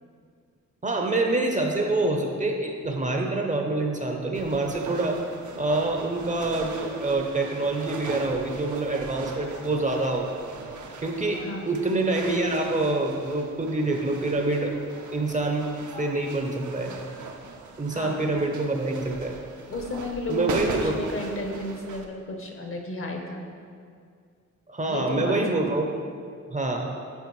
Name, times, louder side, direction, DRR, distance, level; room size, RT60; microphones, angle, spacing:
voice 1, 0.8-5.2 5.6-10.3 11.0-14.7 15.1-17.0 17.8-19.3 20.3-21.0 24.7-25.9 26.5-26.9, right 2 dB, 25° right, 2 dB, 0.6 m, -26 dB
sound 1, 4.3-22.1, right 4 dB, 75° right, 0.7 m, -40 dB
voice 2, 17.9-18.3 19.7-23.4 24.8-25.4 25.7-25.8, left 1 dB, 45° left, 2 dB, 0.8 m, -33 dB
8.9 x 4.9 x 3.1 m, 2.2 s
wide cardioid pair, 130°, 29 cm